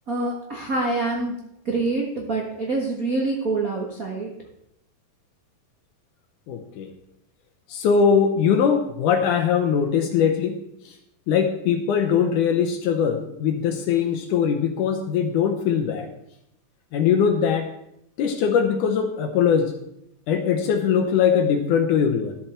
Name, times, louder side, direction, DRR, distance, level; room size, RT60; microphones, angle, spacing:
voice 1, 0.1-1.3 1.6-4.3, right 2 dB, 60° right, -1 dB, 0.9 m, -26 dB
voice 2, 6.5-6.9 7.7-10.6 11.3-16.1 16.9-17.7 18.2-19.7 20.3-22.3, left 7 dB, 70° left, 5 dB, 2.1 m, -21 dB
13.0 x 7.6 x 4.4 m, 0.78 s
omnidirectional pair, 4.3 m